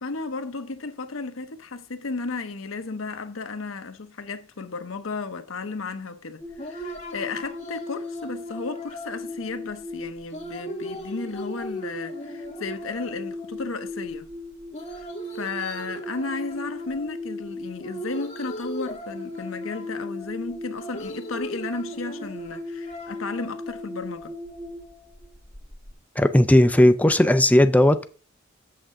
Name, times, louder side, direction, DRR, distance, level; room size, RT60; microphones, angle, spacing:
voice 1, 0.0-14.3 15.3-24.3, left 3 dB, 80° left, 0.8 m, -34 dB
sound 1, 6.4-25.9, left 1 dB, 35° left, 1.8 m, -36 dB
voice 2, 26.2-28.0, left 1 dB, 5° left, 0.5 m, -16 dB
8.1 x 6.5 x 3.7 m
head